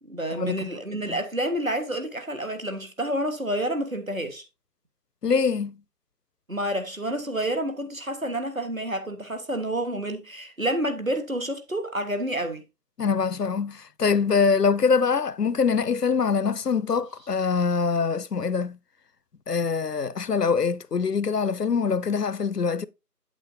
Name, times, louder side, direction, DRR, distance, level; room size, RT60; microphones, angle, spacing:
voice 1, 0.0-4.4 6.5-12.6, right 1 dB, 55° right, 1.5 m, -29 dB
voice 2, 5.2-5.7 13.0-18.8 19.5-22.9, left 5 dB, 70° left, 0.6 m, -24 dB
8.2 x 8.1 x 2.7 m
figure-of-eight pair, 180°, 49 cm